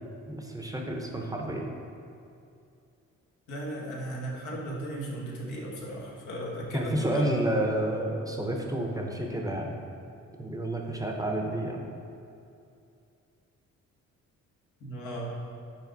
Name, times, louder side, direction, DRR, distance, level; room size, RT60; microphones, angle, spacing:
voice 1, 0.3-1.7 6.7-9.8 10.4-11.9, right 1 dB, 10° right, 1 dB, 0.6 m, -30 dB
voice 2, 3.5-7.2 14.8-15.4, right 1 dB, 85° left, -3 dB, 1.3 m, -36 dB
5.8 x 4.1 x 3.9 m, 2.6 s
cardioid pair, 90°, 30 cm